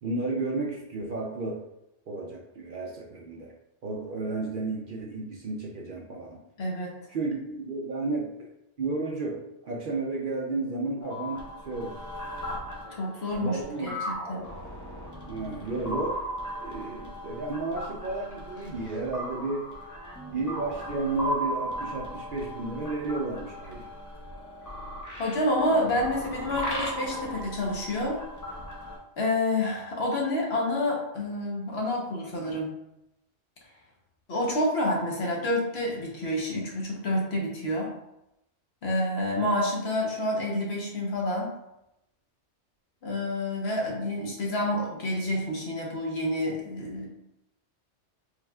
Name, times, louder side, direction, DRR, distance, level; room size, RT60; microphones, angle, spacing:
voice 1, 0.0-1.6 2.1-3.5 3.8-6.4 7.1-8.5 8.8-12.0 13.3-14.0 15.3-16.2 16.6-19.7 20.3-23.9, right 3 dB, 55° right, -1 dB, 0.6 m, -32 dB
voice 2, 6.6-6.9 13.0-14.4 25.2-28.2 29.2-32.7 34.3-37.9 38.8-41.5 43.0-47.1, left 1 dB, 60° left, -2 dB, 1.2 m, -28 dB
sound 1, 11.0-29.0, equal, 20° left, 0.7 m, -37 dB
4.7 x 3.4 x 2.3 m, 0.86 s
omnidirectional pair, 1.2 m